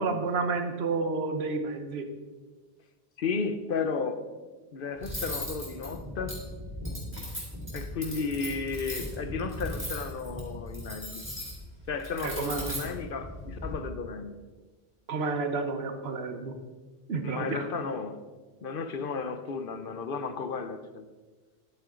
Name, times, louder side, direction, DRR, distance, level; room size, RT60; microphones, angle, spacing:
voice 1, 0.0-2.1 12.2-12.8 15.1-16.5 17.1-17.7, right 4 dB, 75° right, 6 dB, 1.2 m, -30 dB
voice 2, 3.2-4.2 4.7-6.4 7.7-11.3 11.9-14.3 17.2-18.2 18.6-21.0, left 4 dB, 60° left, 9 dB, 0.9 m, -33 dB
Cutlery silverware, 5.0-13.7, left 1 dB, 10° right, 2.9 m, -38 dB
10.5 x 9.0 x 3.8 m, 1.3 s
omnidirectional pair, 1.1 m